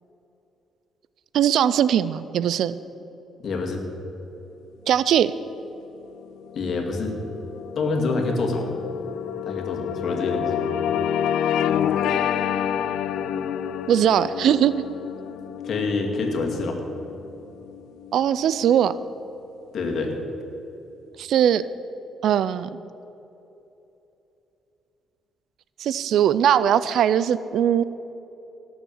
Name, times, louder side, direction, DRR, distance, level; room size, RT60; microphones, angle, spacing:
voice 1, 1.3-2.8 4.9-5.3 13.9-14.7 18.1-19.0 21.2-21.6 22.2-22.8 25.8-27.8, right 10 dB, 75° right, 16 dB, 0.4 m, -20 dB
voice 2, 3.4-3.8 6.5-7.2 7.8-8.7 9.4-10.6 15.6-16.8 19.7-20.1, left 3 dB, 60° left, 2 dB, 2.3 m, -26 dB
sound 1, 5.9-18.5, left 9 dB, 80° left, 0.5 m, -28 dB
17.5 x 7.2 x 7.2 m, 3.0 s
cardioid pair, 90°, 0 cm